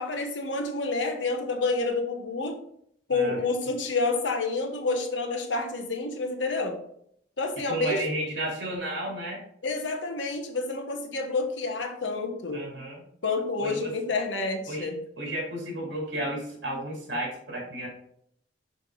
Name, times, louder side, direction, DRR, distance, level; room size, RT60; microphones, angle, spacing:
voice 1, 0.0-2.6 3.1-6.8 7.4-8.0 9.6-12.6 13.2-15.0, left 3 dB, 90° left, 4 dB, 1.2 m, -29 dB
voice 2, 3.1-3.4 7.7-9.4 12.5-13.0 13.6-13.9 14.7-14.9 15.2-17.9, right 1 dB, 70° right, -1 dB, 2.9 m, -32 dB
6.4 x 5.2 x 4.0 m, 0.70 s
head